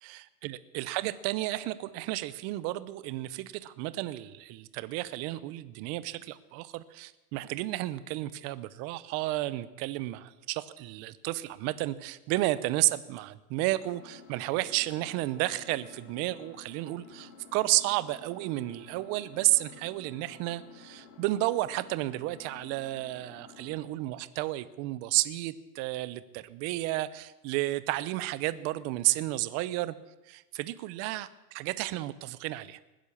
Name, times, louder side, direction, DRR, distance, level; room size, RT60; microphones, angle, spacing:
voice 1, 0.0-30.0 30.3-32.8, right 17 dB, 35° right, 16 dB, 0.7 m, -32 dB
Engine, 13.8-23.8, left 5 dB, 45° left, 3.9 m, -53 dB
19.5 x 10.5 x 7.1 m, 1.1 s
supercardioid pair, 140°, 47 cm